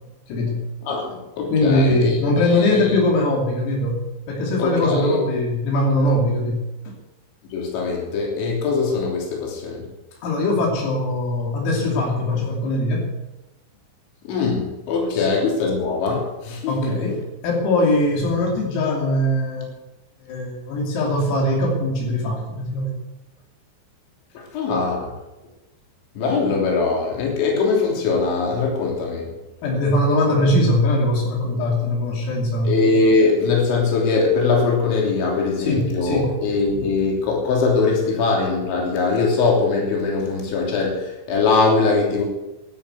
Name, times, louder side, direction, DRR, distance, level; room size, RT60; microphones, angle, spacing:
voice 1, 0.3-0.6 1.5-4.0 4.3-7.0 10.2-13.1 15.1-15.3 16.7-19.7 20.2-23.0 29.6-32.8 35.7-36.4, left 1 dB, 85° left, -1 dB, 5.5 m, -21 dB
voice 2, 0.8-2.2 2.5-3.0 4.6-5.2 7.5-9.9 14.3-17.0 24.4-25.1 26.2-29.3 32.7-42.2, left 4 dB, 65° left, -1 dB, 5.4 m, -21 dB
12.0 x 11.0 x 8.1 m, 1.0 s
omnidirectional pair, 5.9 m